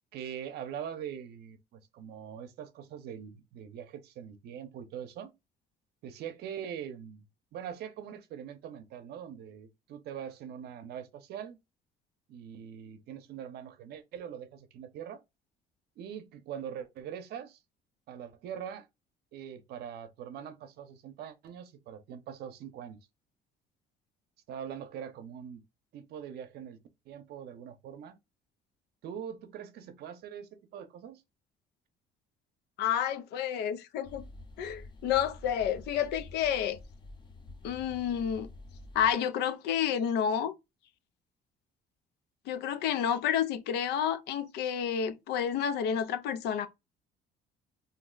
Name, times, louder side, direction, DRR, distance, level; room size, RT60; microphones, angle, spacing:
voice 1, 0.1-5.3 6.0-7.2 7.5-11.6 12.3-15.2 16.0-17.6 18.1-18.9 19.3-23.0 24.5-25.6 25.9-26.8 27.1-28.2 29.0-31.2, right 8 dB, 70° right, 0.7 m, -42 dB
voice 2, 32.8-34.3 34.6-36.8 37.6-38.5 38.9-40.5 42.5-46.7, left 8 dB, 80° left, 0.5 m, -30 dB
sound 1, 34.0-39.1, left 2 dB, 25° left, 0.5 m, -48 dB
2.7 x 2.0 x 3.7 m
cardioid pair, 110°, 17 cm